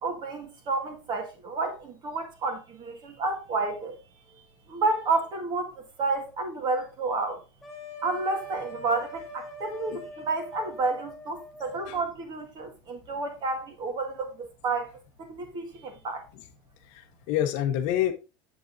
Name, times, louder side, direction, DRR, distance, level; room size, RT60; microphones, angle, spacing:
voice 1, 0.0-4.0 4.7-7.4 8.0-14.9 15.3-16.2, right 3 dB, 30° right, 1.7 m, -30 dB
sound 1, 7.6-12.0, right 1 dB, 5° left, 2.1 m, -43 dB
voice 2, 16.9-18.1, left 11 dB, 50° left, 0.9 m, -27 dB
7.5 x 7.3 x 2.6 m
cardioid pair, 170°, 15 cm